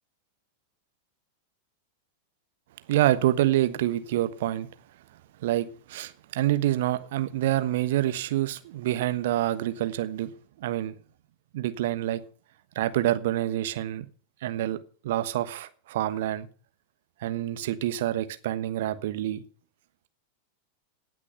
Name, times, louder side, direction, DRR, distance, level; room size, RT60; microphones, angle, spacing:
voice 1, 2.9-4.7 5.4-10.3 10.6-10.9 11.5-12.2 12.7-14.0 14.4-14.8 15.0-16.5 17.2-19.4, right 14 dB, 55° right, 1.2 m, -27 dB
18.0 x 6.2 x 6.5 m
figure-of-eight pair, 90°, 0 cm